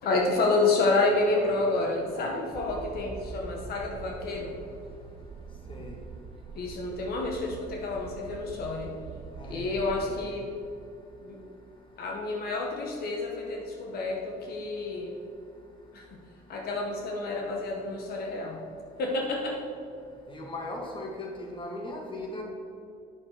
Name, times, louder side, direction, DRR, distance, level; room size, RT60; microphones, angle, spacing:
voice 1, 0.0-4.6 6.5-8.9 9.4-10.5 11.2-11.4 12.0-15.1 15.9-16.1 16.5-18.6 19.0-19.6, left 2 dB, 65° left, 1 dB, 1.3 m, -29 dB
sound 1, 2.5-10.3, right 5 dB, 35° right, 0.5 m, -44 dB
voice 2, 9.3-10.2 20.3-22.4, left 2 dB, 30° left, 0 dB, 1.8 m, -38 dB
9.6 x 6.3 x 4.5 m, 2.5 s
cardioid pair, 110°, 17 cm